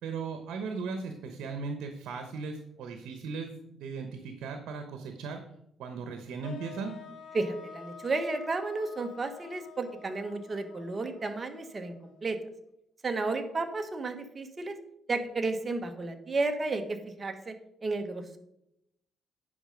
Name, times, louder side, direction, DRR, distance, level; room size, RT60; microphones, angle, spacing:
voice 1, 0.0-5.4 5.8-7.0, right 4 dB, 80° right, 6 dB, 1.0 m, -37 dB
sound 1, 6.4-12.5, left 7 dB, 70° left, 1.1 m, -49 dB
voice 2, 7.3-12.4 13.0-14.8 15.1-17.5 17.8-18.4, right 3 dB, 30° right, 7 dB, 1.2 m, -32 dB
10.0 x 5.4 x 5.1 m, 0.80 s
cardioid pair, 90°, 0 cm